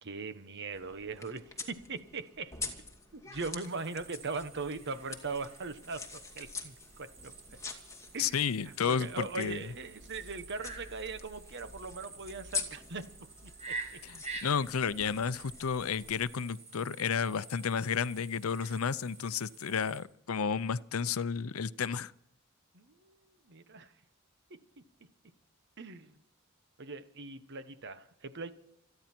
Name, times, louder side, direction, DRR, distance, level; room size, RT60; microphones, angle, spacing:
voice 1, 0.0-2.6 3.1-6.0 6.3-7.3 8.1-14.0 22.7-23.9 24.5-24.8 25.8-26.2 26.8-28.5, right 4 dB, 55° right, 11 dB, 1.2 m, -40 dB
sound 1, 0.7-16.3, left 4 dB, 15° left, 2.5 m, -46 dB
sound 2, 3.6-20.0, right 4 dB, 35° right, 4.8 m, -49 dB
voice 2, 8.2-9.6 14.0-22.1, left 6 dB, 85° left, 17 dB, 0.6 m, -32 dB
28.0 x 10.5 x 4.5 m, 0.79 s
head